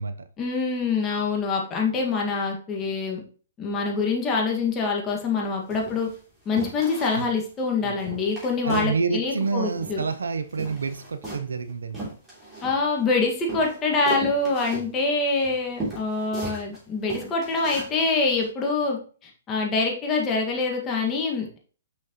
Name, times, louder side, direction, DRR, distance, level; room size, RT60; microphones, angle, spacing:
voice 1, 0.4-3.2 3.6-6.1 6.5-10.0 12.6-21.6, left 4 dB, 20° left, 1.8 m, -25 dB
sound 1, 5.1-5.3 5.7-6.2 6.6-7.3 7.6-7.7 8.0-9.0 9.2-10.2 10.5-13.1 13.5-16.8 17.1-17.9 18.4-18.5, right 2 dB, 10° right, 3.0 m, -36 dB
voice 2, 8.6-12.1, right 4 dB, 90° right, 0.6 m, -28 dB
6.2 x 5.7 x 3.0 m
hypercardioid pair, 135°, 0 cm